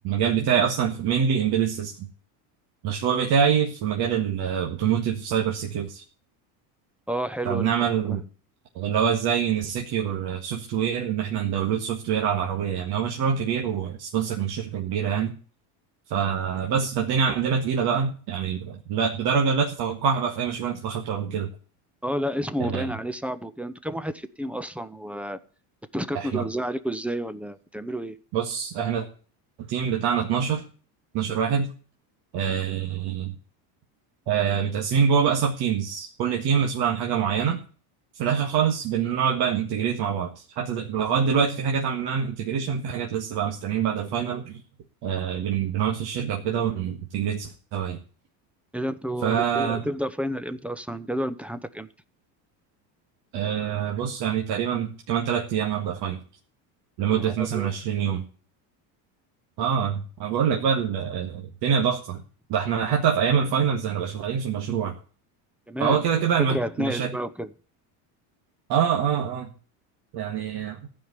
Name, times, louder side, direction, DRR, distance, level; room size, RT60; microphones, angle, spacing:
voice 1, 0.0-2.1 2.8-6.0 7.5-8.2 8.8-15.3 16.1-21.5 22.6-22.8 26.1-26.4 28.3-29.1 29.6-30.6 31.1-31.7 32.3-33.3 34.3-37.6 38.1-44.6 45.0-48.0 49.2-49.8 53.3-56.2 57.0-58.2 59.6-62.2 62.5-64.9 65.8-67.2 68.7-69.5 70.1-70.9, right 7 dB, 60° right, 1 dB, 1.8 m, -25 dB
voice 2, 7.1-7.7 8.0-8.2 22.0-25.4 25.9-28.2 48.7-51.9 57.1-57.7 65.7-66.0 66.4-67.5, equal, 5° right, 13 dB, 0.6 m, -30 dB
15.0 x 5.2 x 9.7 m, 0.41 s
cardioid pair, 125°, 45 cm